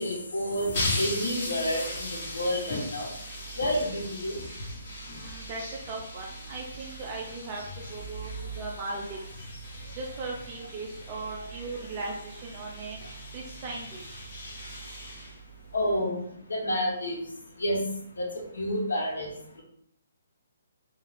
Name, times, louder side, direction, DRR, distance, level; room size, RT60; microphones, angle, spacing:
voice 1, 0.0-3.1 3.6-4.4 15.7-16.2 16.5-17.2 17.6-17.8 18.2-18.3 18.5-19.3, equal, 90° left, -1 dB, 0.9 m, -29 dB
sound 1, 0.5-15.9, left 1 dB, 45° left, 1.1 m, -38 dB
voice 2, 5.1-5.6 5.9-7.6 7.9-8.3 8.6-9.2 9.9-13.0 13.3-14.3, right 3 dB, 30° right, -2 dB, 0.4 m, -38 dB
2.4 x 2.2 x 3.2 m, 0.69 s
hypercardioid pair, 155°, 0 cm